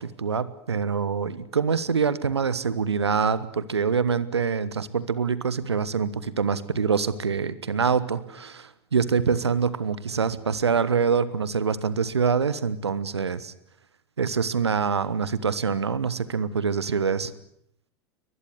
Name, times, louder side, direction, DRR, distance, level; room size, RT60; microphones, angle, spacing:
voice 1, 0.0-13.5 14.2-17.3, right 6 dB, 75° right, 16 dB, 1.4 m, -25 dB
22.5 x 20.5 x 8.0 m, 0.71 s
figure-of-eight pair, 85°, 14 cm